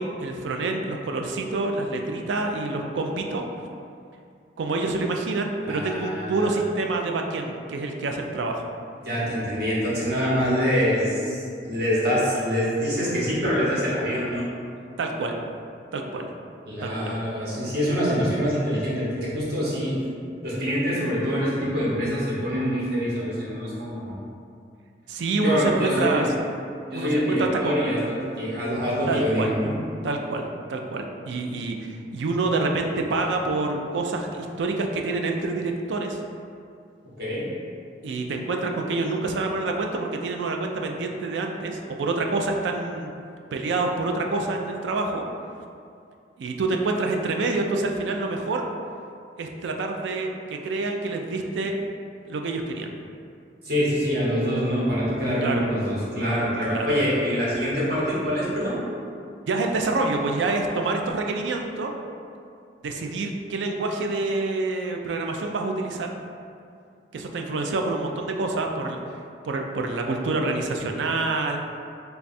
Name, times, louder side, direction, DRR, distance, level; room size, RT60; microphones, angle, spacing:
voice 1, 0.0-3.4 4.6-8.7 15.0-15.4 15.9-16.3 16.8-17.1 25.1-26.3 26.9-27.8 29.1-29.5 30.0-30.4 30.7-36.2 38.0-43.1 43.5-45.3 46.4-48.6 49.4-51.8 52.3-52.9 55.4-55.6 56.7-56.9 59.5-61.9 62.8-66.1 67.1-69.0 69.4-71.6, right 3 dB, 90° right, 2 dB, 0.4 m, -27 dB
voice 2, 5.6-6.4 9.0-14.5 16.7-20.0 20.4-24.1 25.4-26.3 26.9-29.7 37.2-37.5 53.6-58.8, equal, 65° right, -6 dB, 0.9 m, -25 dB
3.4 x 2.3 x 4.0 m, 2.4 s
head